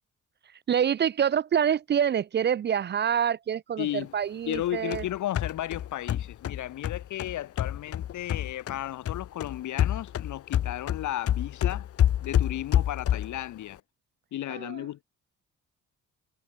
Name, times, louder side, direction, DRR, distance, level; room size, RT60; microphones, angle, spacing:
voice 1, 0.7-5.0 14.5-14.8, right 8 dB, 35° right, 0.4 m, -26 dB
voice 2, 3.8-4.1 4.5-11.9 12.2-13.8 14.3-15.0, left 13 dB, 75° left, 1.9 m, -34 dB
sound 1, 4.5-8.8 9.1-13.4, left 11 dB, 50° left, 0.7 m, -28 dB
cardioid pair, 90°, 30 cm